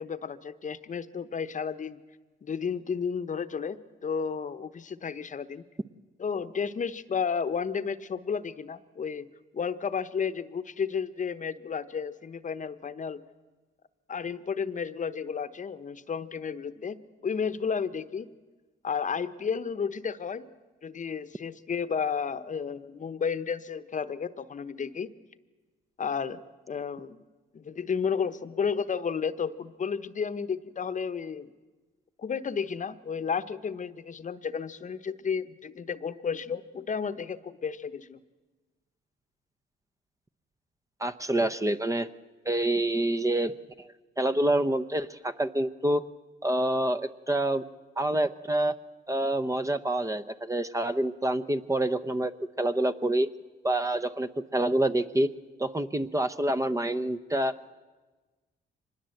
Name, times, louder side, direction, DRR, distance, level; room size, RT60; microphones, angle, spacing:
voice 1, 0.0-2.0 2.4-5.6 6.2-9.3 9.5-13.2 14.1-18.3 18.8-20.5 20.8-25.1 26.0-26.4 26.7-27.2 27.5-31.5 32.2-38.2, left 6 dB, 40° left, 13 dB, 1.0 m, -32 dB
voice 2, 41.0-42.1 42.4-43.9 44.2-46.0 46.4-47.6 48.0-48.8 49.1-52.3 52.6-53.3 53.6-55.3 55.6-57.5, right 1 dB, 15° right, 11 dB, 0.7 m, -27 dB
24.5 x 20.5 x 7.8 m, 1.3 s
cardioid pair, 90°, 20 cm